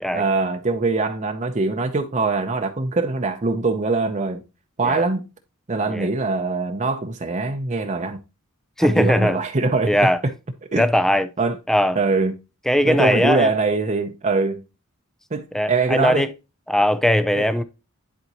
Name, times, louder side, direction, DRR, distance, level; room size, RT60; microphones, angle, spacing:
voice 1, 0.1-4.4 4.8-5.3 5.7-8.2 8.8-9.9 10.2-10.3 10.7-10.9 11.4-11.6 11.9-12.3 12.8-14.6 15.3-16.3 17.4-17.5, right 3 dB, 35° right, 0.7 m, -22 dB
voice 2, 8.8-9.4 9.8-10.2 10.7-11.3 11.7-12.0 12.7-13.5 15.5-16.3 16.7-17.6, equal, ahead, 0.4 m, -19 dB
11.0 x 4.4 x 2.9 m
head